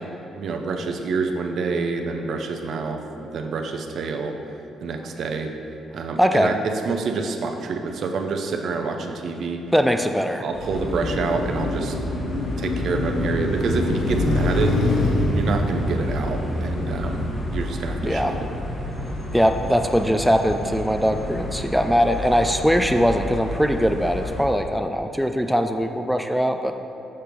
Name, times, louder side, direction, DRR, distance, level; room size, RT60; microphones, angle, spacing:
voice 1, 0.4-4.4 4.8-5.5 5.9-9.6 10.4-12.0 12.6-14.8 15.3-18.5, right 4 dB, 65° right, 4 dB, 0.6 m, -27 dB
voice 2, 6.2-6.5 9.7-10.4 18.0-18.4 19.3-26.7, equal, ahead, 6 dB, 0.3 m, -21 dB
Car passing by, 10.4-22.7, left 1 dB, 80° left, 1.0 m, -27 dB
sound 1, 10.5-24.4, left 1 dB, 30° left, 1.1 m, -32 dB
6.5 x 3.4 x 5.8 m, 2.9 s
cardioid pair, 90°, 0 cm